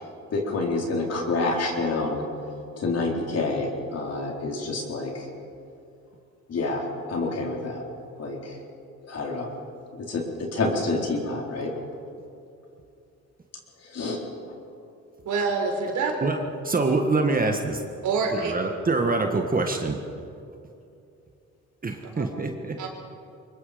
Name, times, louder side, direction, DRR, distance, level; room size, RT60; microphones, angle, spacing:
voice 1, 0.3-2.2 2.8-5.3 6.5-6.8 7.1-7.8 8.2-8.6 9.1-9.5 9.9-11.7 13.8-14.2, left 3 dB, 55° left, 0 dB, 4.3 m, -28 dB
voice 2, 15.2-16.1 18.0-18.5 22.2-22.3 22.8-22.9, right 4 dB, 75° right, 1 dB, 4.3 m, -26 dB
voice 3, 16.6-17.8 18.3-20.0 21.8-22.8, right 3 dB, 30° right, 4 dB, 1.6 m, -25 dB
24.0 x 21.5 x 5.3 m, 2.6 s
cardioid pair, 90°, 30 cm